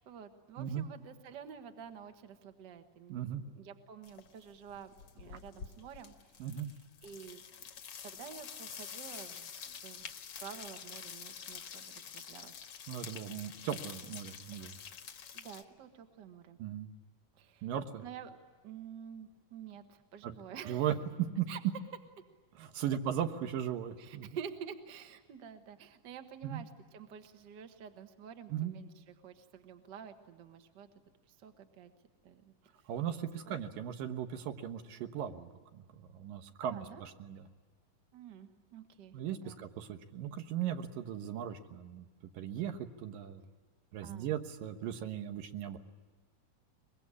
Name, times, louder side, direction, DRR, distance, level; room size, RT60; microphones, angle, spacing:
voice 1, 0.0-6.1 7.0-7.4 8.0-10.1 10.4-12.5 15.3-16.6 17.4-17.7 18.0-18.4 18.6-20.8 21.5-21.6 24.0-30.9 31.3-31.9 32.2-32.5 33.4-33.7 36.6-37.0 38.1-39.2 39.4-39.7 44.0-44.3, right 8 dB, 45° right, 7 dB, 1.6 m, -49 dB
voice 2, 3.1-3.4 6.4-6.7 12.9-14.7 16.6-16.9 17.6-18.0 20.2-20.3 20.7-21.5 22.6-24.3 26.4-26.6 28.5-28.7 32.9-37.4 39.1-42.1 42.3-43.4 43.9-45.8, right 10 dB, 90° right, 7 dB, 3.0 m, -37 dB
sound 1, 4.0-4.4 4.7-15.6, left 7 dB, 55° left, 1.8 m, -47 dB
24.0 x 21.5 x 9.7 m, 1.4 s
omnidirectional pair, 3.8 m